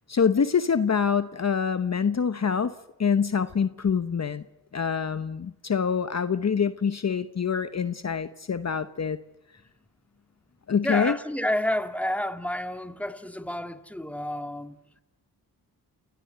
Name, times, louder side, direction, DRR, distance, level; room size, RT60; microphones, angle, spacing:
voice 1, 0.1-2.7 3.0-4.4 4.7-9.2 10.7-11.2, left 6 dB, 45° left, 1.0 m, -25 dB
voice 2, 10.8-14.8, left 1 dB, 5° left, 2.0 m, -30 dB
29.0 x 17.0 x 8.0 m
cardioid pair, 45°, 39 cm